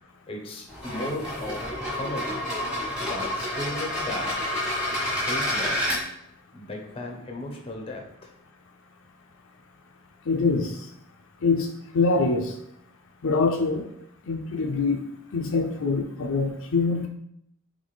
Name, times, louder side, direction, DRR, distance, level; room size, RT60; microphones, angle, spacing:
voice 1, 0.3-2.4 3.0-4.5 5.2-6.0 6.5-8.3, left 2 dB, 25° left, 2 dB, 0.7 m, -36 dB
sound 1, 0.7-6.0, left 1 dB, 5° right, 1.4 m, -29 dB
voice 2, 10.3-10.8 11.4-11.7 11.9-12.5 13.2-13.9 14.3-15.0 15.3-17.1, left 4 dB, 65° left, 2 dB, 0.5 m, -24 dB
4.1 x 3.4 x 3.2 m, 0.72 s
head